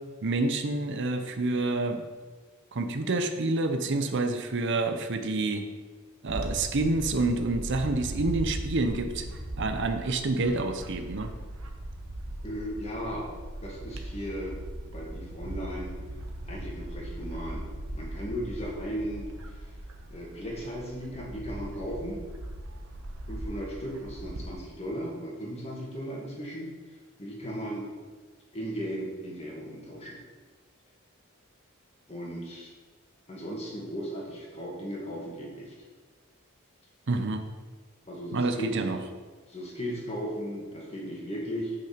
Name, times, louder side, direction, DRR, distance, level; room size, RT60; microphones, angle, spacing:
voice 1, 0.2-2.0 2.7-5.6 6.2-9.3 9.6-11.3 37.1-37.4 38.3-39.0, right 2 dB, 55° right, 7 dB, 0.7 m, -28 dB
Bird / Wind, 6.3-24.5, right 1 dB, 80° right, 1.1 m, -39 dB
voice 2, 12.4-13.3 13.6-14.6 14.9-16.0 16.5-17.6 17.9-19.6 20.1-22.2 23.3-26.7 27.2-27.9 28.5-30.2 32.1-32.7 33.3-35.7 38.1-38.8 39.5-41.8, equal, 30° left, -2 dB, 2.0 m, -36 dB
8.4 x 6.3 x 5.0 m, 1.4 s
head